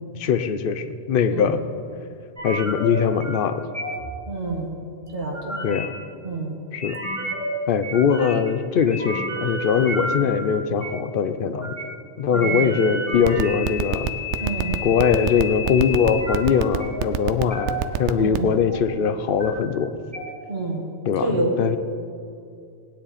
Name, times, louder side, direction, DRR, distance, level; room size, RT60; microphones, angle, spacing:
voice 1, 0.1-1.6 2.4-3.6 5.6-5.9 6.7-7.0 7.7-11.7 12.2-14.1 14.8-19.9 21.1-21.3 21.6-21.8, left 7 dB, 60° left, 10 dB, 0.8 m, -21 dB
voice 2, 1.3-1.6 4.3-4.7 5.1-5.7 6.2-6.6 12.3-12.6 14.4-14.8 18.1-18.5 20.5-20.8 21.2-21.6, right 2 dB, 60° right, -1 dB, 1.9 m, -27 dB
sound 1, 2.4-2.9 3.2-3.5 3.7-4.1 5.0-5.9 6.8-7.5 7.8-8.5 8.8-10.2 10.8-11.0 11.5-11.8 12.3-16.4 16.8-17.0 17.5-17.8 18.2-18.9 19.2-19.5 20.1-20.2, equal, 15° right, 1.7 m, -30 dB
sound 2, 13.1-18.5, right 11 dB, 90° right, 0.9 m, -23 dB
18.0 x 10.0 x 4.2 m, 2.4 s
omnidirectional pair, 1.1 m